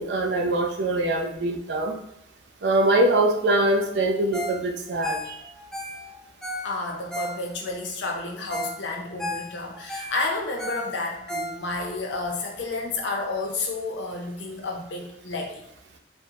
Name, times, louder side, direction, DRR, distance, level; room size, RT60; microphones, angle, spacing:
voice 1, 0.0-2.0 2.6-5.3, right 1 dB, 65° right, 2 dB, 0.5 m, -23 dB
Ringtone, 4.3-4.6 4.9-7.8 8.2-8.3 8.5-8.8 9.1-11.9 12.4-12.5, equal, 5° left, 0.3 m, -34 dB
voice 2, 6.6-15.7, left 3 dB, 75° left, 0 dB, 0.6 m, -31 dB
3.4 x 2.1 x 2.8 m, 0.81 s
head